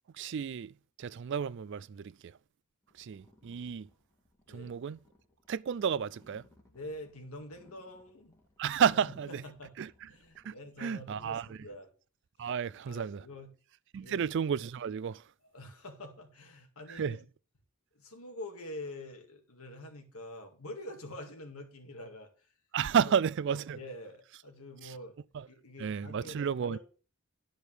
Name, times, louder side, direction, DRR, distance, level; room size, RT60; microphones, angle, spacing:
voice 1, 0.1-2.4 3.0-3.9 4.5-5.0 5.5-6.4 8.6-9.4 9.8-10.1 10.4-11.6 12.4-13.3 13.9-15.2 16.9-17.2 22.7-23.8 24.8-24.9 25.3-25.5 25.8-26.8, right 7 dB, 55° right, 0.3 m, -32 dB
sound 1, 2.8-10.5, left 1 dB, 15° left, 1.8 m, -64 dB
voice 2, 6.7-8.4 9.3-9.7 10.1-11.9 12.9-13.5 14.0-14.3 15.5-17.2 17.9-22.3 23.5-25.2 25.5-26.8, left 1 dB, 80° left, 2.2 m, -46 dB
11.0 x 5.1 x 6.2 m
head